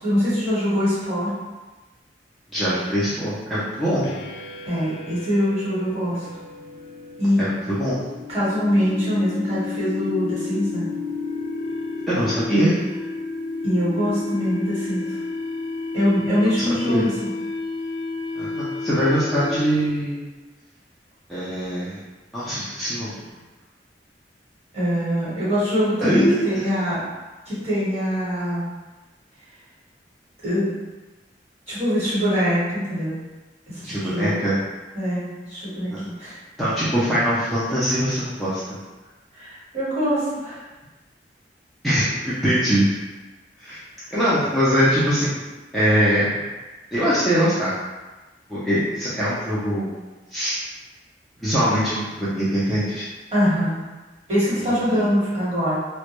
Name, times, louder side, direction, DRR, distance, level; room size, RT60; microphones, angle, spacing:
voice 1, 0.0-1.3 4.6-6.2 7.2-7.4 8.3-10.8 13.6-15.0 15.9-17.1 24.7-27.0 27.5-28.6 30.4-30.7 31.7-33.2 33.7-34.4 34.9-36.4 39.3-40.6 44.0-44.1 53.3-53.8 54.3-55.8, equal, 35° right, -11 dB, 1.1 m, -23 dB
voice 2, 2.5-4.1 7.4-8.0 12.1-12.8 16.7-17.0 18.4-20.2 21.3-22.0 22.3-23.1 26.0-26.7 33.8-34.6 35.9-36.1 36.6-38.6 41.8-43.0 43.6-43.8 44.1-45.4 45.7-46.4 46.9-47.7 48.5-49.9 50.3-50.6 51.4-53.1 54.6-55.1, equal, ahead, -12 dB, 0.4 m, -22 dB
sound 1, 4.0-20.0, left 3 dB, 80° left, 0.3 m, -32 dB
2.1 x 2.1 x 2.9 m, 1.2 s
head